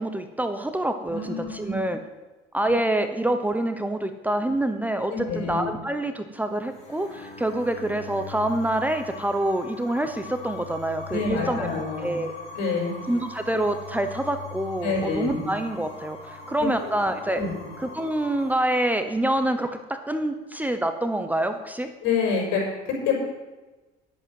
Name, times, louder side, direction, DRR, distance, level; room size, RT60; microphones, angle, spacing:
voice 1, 0.0-2.0 2.5-11.7 12.0-12.3 13.1-17.4 17.8-21.9, right 1 dB, 10° right, 8 dB, 0.9 m, -26 dB
voice 2, 1.1-1.8 2.6-2.7 5.1-5.6 11.1-12.1 12.5-12.9 14.8-15.4 16.6-16.7 17.3-17.6 22.0-23.1, left 5 dB, 75° left, -1 dB, 5.4 m, -27 dB
sound 1, 6.3-18.6, left 3 dB, 35° left, 3.9 m, -41 dB
10.5 x 8.3 x 7.8 m, 1.2 s
cardioid pair, 105°, 19 cm